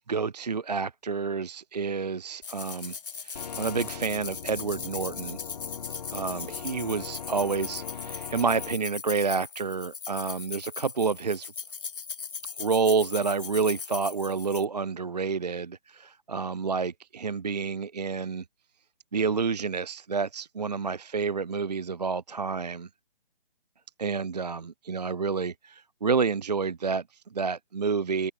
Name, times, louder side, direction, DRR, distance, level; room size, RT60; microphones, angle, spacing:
voice 1, 0.1-5.4 6.1-11.5 12.6-18.4 19.1-22.9 24.0-28.3, right 5 dB, 40° right, 0.4 m, -29 dB
sound 1, 2.4-14.6, left 6 dB, 55° left, 5.2 m, -39 dB
sound 2, 3.3-8.7, left 7 dB, 40° left, 1.5 m, -40 dB
figure-of-eight pair, 155°, 32 cm